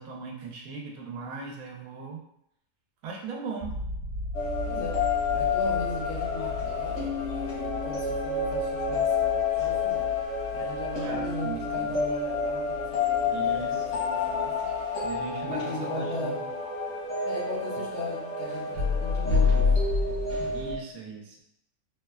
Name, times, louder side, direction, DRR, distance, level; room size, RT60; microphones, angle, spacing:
voice 1, 0.0-2.2 3.0-3.8 11.0-12.0 13.3-13.9 15.0-16.5 20.5-21.4, right 4 dB, 85° right, 1 dB, 1.1 m, -38 dB
sound 1, 3.6-15.5, equal, 20° right, 0.7 m, -40 dB
sound 2, 4.3-20.7, left 4 dB, 85° left, 1.5 m, -28 dB
voice 2, 4.7-10.2 10.5-14.7 15.5-16.5 17.2-19.8, left 2 dB, 65° left, -1 dB, 0.7 m, -38 dB
3.7 x 2.1 x 2.2 m, 0.77 s
omnidirectional pair, 1.5 m